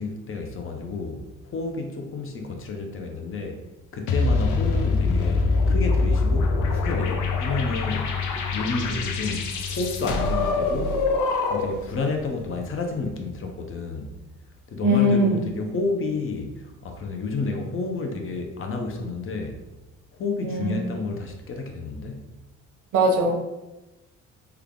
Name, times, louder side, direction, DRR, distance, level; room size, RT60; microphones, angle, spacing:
voice 1, 0.0-3.6 3.9-8.2 8.5-11.0 11.4-14.2 14.7-19.6 20.1-22.3, left 3 dB, 45° left, 3 dB, 0.7 m, -30 dB
sound 1, 4.1-11.9, left 3 dB, 80° left, 0.6 m, -24 dB
voice 2, 14.8-15.4 20.4-20.8 22.9-23.3, equal, 85° right, 1 dB, 0.9 m, -20 dB
3.3 x 2.3 x 3.7 m, 1.0 s
cardioid pair, 90°, 30 cm